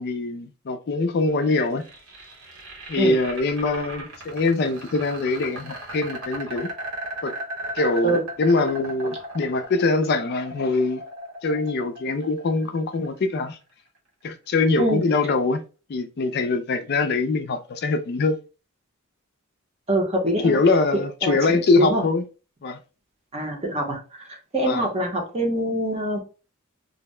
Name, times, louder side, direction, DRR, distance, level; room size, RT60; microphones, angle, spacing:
voice 1, 0.0-1.9 2.9-6.7 7.2-7.4 7.7-11.0 11.4-13.6 14.2-15.6 15.9-18.4 20.4-22.2 22.6-22.8 24.7-24.9, left 3 dB, 45° left, 0.4 m, -23 dB
sound 1, 1.5-13.5, right 1 dB, 75° right, 1.0 m, -36 dB
voice 2, 19.9-20.6 20.9-22.0 23.3-26.2, right 1 dB, 30° right, 0.7 m, -25 dB
2.7 x 2.1 x 3.1 m
head